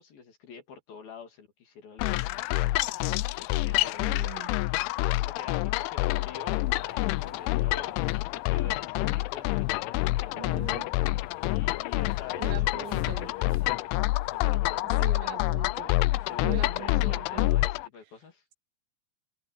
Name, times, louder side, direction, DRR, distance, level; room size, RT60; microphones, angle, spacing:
voice 1, 0.0-4.5 5.0-10.9 11.4-13.8 14.3-15.4 16.3-18.4, left 5 dB, 50° left, 4.0 m, -46 dB
sound 1, 2.0-17.9, left 19 dB, 80° left, 2.8 m, -27 dB
voice 2, 4.0-4.6 10.3-10.9 12.4-13.3 15.0-17.6, right 11 dB, 70° right, 3.2 m, -41 dB
sound 2, 6.1-14.5, left 1 dB, 5° left, 7.1 m, -57 dB
omnidirectional pair, 5.8 m